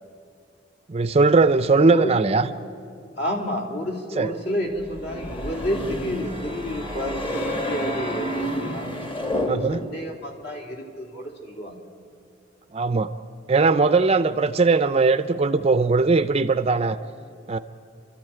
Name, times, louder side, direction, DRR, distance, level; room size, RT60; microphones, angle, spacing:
voice 1, 0.9-2.5 4.2-4.3 9.5-9.9 12.7-13.1 13.5-17.0 17.5-17.6, right 3 dB, 30° right, 12 dB, 0.5 m, -19 dB
voice 2, 1.8-2.2 3.2-8.9 9.4-11.7, equal, 55° left, 1 dB, 3.2 m, -30 dB
sound 1, 4.8-10.1, left 1 dB, 25° left, 1.6 m, -30 dB
29.0 x 13.0 x 9.0 m, 2.4 s
head